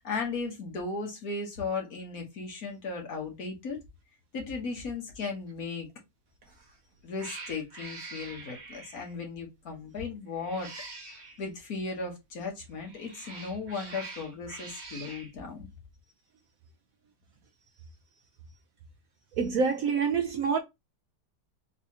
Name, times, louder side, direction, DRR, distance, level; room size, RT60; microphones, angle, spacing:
voice 1, 0.0-3.8 4.3-5.9 7.0-10.7 11.4-15.7, left 4 dB, 60° left, 1.7 m, -36 dB
Cat, 6.5-6.7 7.2-9.2 10.3-11.4 12.7-15.3, right 3 dB, 45° right, 1.4 m, -44 dB
voice 2, 19.4-20.6, right 5 dB, 70° right, 0.9 m, -26 dB
3.9 x 2.9 x 2.7 m
omnidirectional pair, 1.8 m